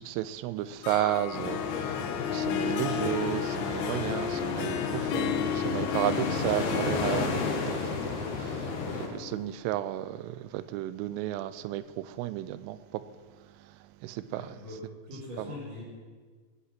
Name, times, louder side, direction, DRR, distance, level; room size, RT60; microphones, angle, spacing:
voice 1, 0.0-7.4 8.1-13.0 14.0-14.6, right 14 dB, 85° right, 3.1 m, -33 dB
Harp, 0.6-9.6, left 10 dB, 80° left, 3.0 m, -34 dB
sound 1, 1.3-9.1, left 4 dB, 65° left, 2.0 m, -32 dB
voice 2, 6.2-6.5 7.5-7.8 14.3-14.8 15.1-15.8, left 2 dB, 25° right, 4.5 m, -42 dB
20.0 x 8.6 x 5.8 m
omnidirectional pair, 5.7 m